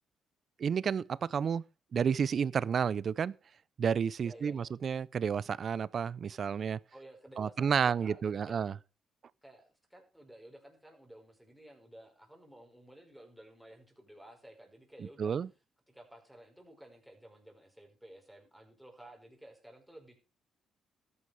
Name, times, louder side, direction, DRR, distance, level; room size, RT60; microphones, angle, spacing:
voice 1, 0.6-1.6 1.9-3.3 3.8-6.8 7.4-8.7 15.0-15.5, right 7 dB, 50° right, 0.6 m, -31 dB
voice 2, 4.2-4.7 6.9-8.6 9.4-15.3 15.9-20.2, right 1 dB, ahead, 5.1 m, -54 dB
13.5 x 9.7 x 4.9 m
cardioid pair, 90°, 0 cm